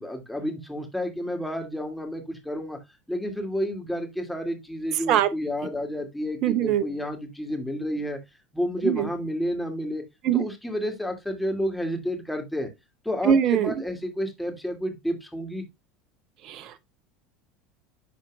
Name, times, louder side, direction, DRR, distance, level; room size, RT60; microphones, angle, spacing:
voice 1, 0.0-2.8 3.1-8.2 8.5-10.0 10.3-12.7 13.0-15.6, equal, 5° left, 2.5 m, -30 dB
voice 2, 6.4-6.8 8.8-9.1 10.2-10.4 13.2-13.7 16.5-16.7, right 9 dB, 50° right, 0.8 m, -22 dB
11.0 x 4.5 x 2.4 m
hypercardioid pair, 75°, 0 cm